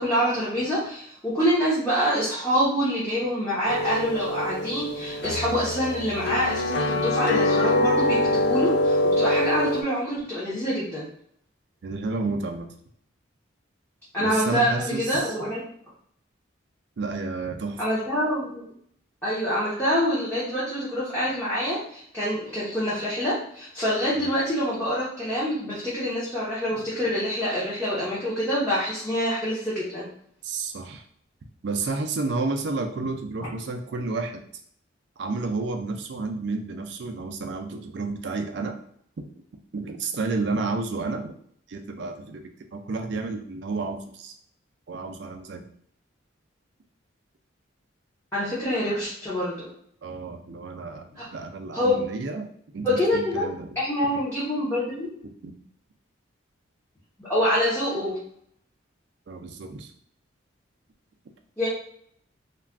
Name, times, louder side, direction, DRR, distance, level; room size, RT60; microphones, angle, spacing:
voice 1, 0.0-11.1 14.1-15.6 17.8-18.6 19.2-30.1 48.3-49.7 51.2-51.3 51.7-51.9 52.8-53.5 53.8-55.1 57.2-58.2 61.6-61.7, equal, 10° left, -10 dB, 0.7 m, -26 dB
sound 1, 3.7-9.8, left 1 dB, 55° left, 0.3 m, -24 dB
voice 2, 11.8-12.7 14.2-15.4 17.0-17.8 24.1-24.3 30.4-31.0 31.6-34.4 35.2-38.8 39.2-39.3 39.7-41.3 41.7-44.3 44.9-45.6 50.0-51.0 51.3-53.7 55.4-55.5 59.3-59.9, right 3 dB, 60° right, 5 dB, 0.4 m, -31 dB
2.4 x 2.2 x 3.3 m, 0.66 s
head